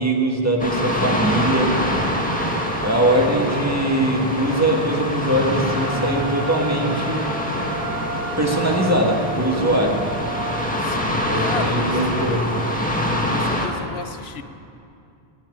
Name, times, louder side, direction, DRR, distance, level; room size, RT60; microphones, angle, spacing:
voice 1, 0.0-1.8 2.8-7.4 8.4-10.1 11.3-12.5, right 1 dB, 15° right, 0 dB, 1.8 m, -21 dB
sound 1, 0.6-13.7, left 1 dB, 10° left, 1.6 m, -25 dB
Wind instrument woodwind instrument, 5.7-10.9, right 4 dB, 45° right, 1.3 m, -34 dB
voice 2, 10.8-12.1 13.3-14.4, left 6 dB, 80° left, 10 dB, 1.0 m, -34 dB
15.5 x 8.9 x 9.8 m, 2.6 s
omnidirectional pair, 1.0 m